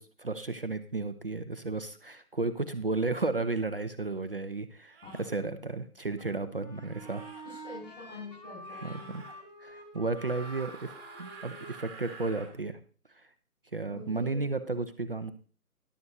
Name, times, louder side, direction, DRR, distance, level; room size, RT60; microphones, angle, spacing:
voice 1, 0.0-7.2 8.8-9.2 9.6-12.8 13.1-13.3 13.7-15.3, right 3 dB, 40° right, 9 dB, 0.6 m, -33 dB
sound 1, 3.5-3.7 4.9-5.3 6.8-7.4 8.6-9.4 10.1-12.5, right 5 dB, 15° right, 1.6 m, -49 dB
sound 2, 6.2-11.7, equal, 25° left, 1.3 m, -48 dB
voice 2, 7.4-9.1 13.9-14.5, left 3 dB, 55° left, -2 dB, 6.6 m, -46 dB
14.0 x 11.0 x 2.7 m, 0.38 s
figure-of-eight pair, 150°, 45 cm